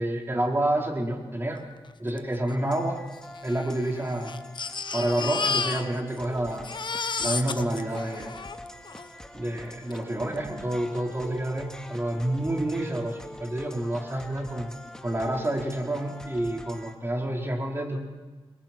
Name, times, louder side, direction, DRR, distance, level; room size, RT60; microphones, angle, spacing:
voice 1, 0.0-1.6 2.0-3.0 3.4-4.4 4.9-6.7 7.2-8.3 9.3-14.7 15.0-18.1, right 1 dB, 25° right, 0 dB, 4.7 m, -29 dB
Crying sobbing, 2.2-2.3 2.5-2.6 3.3-6.2 6.5-9.1 9.9-10.0 10.4-10.5, left 5 dB, 50° left, 1.2 m, -32 dB
sound 1, 2.6-17.0, left 1 dB, 5° left, 2.4 m, -44 dB
29.0 x 22.5 x 4.6 m, 1.3 s
cardioid pair, 80°, 10 cm